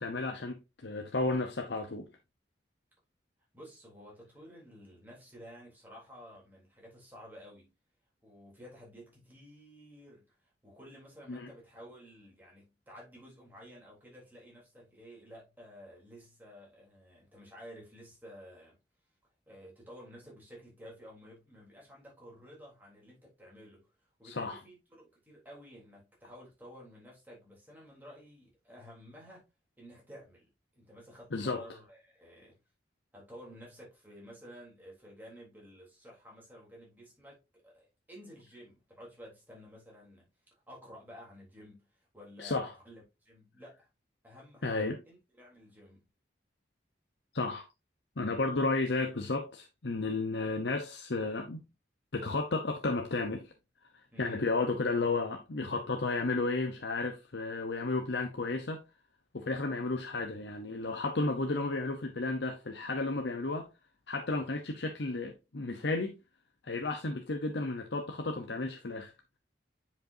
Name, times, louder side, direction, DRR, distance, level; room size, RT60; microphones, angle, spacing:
voice 1, 0.0-2.1 11.3-11.5 24.2-24.6 31.3-31.6 42.4-42.7 44.6-45.0 47.3-47.7 48.2-51.6 52.1-53.5 54.2-58.8 59.3-63.7 64.1-66.2 66.6-69.1, left 3 dB, 75° left, 0.8 m, -33 dB
voice 2, 3.5-7.7 8.2-18.8 19.5-23.9 24.2-29.5 29.8-32.6 33.1-40.3 40.7-43.9 44.2-46.0 54.1-54.5, equal, 10° right, 3.4 m, -52 dB
9.2 x 5.3 x 2.7 m
head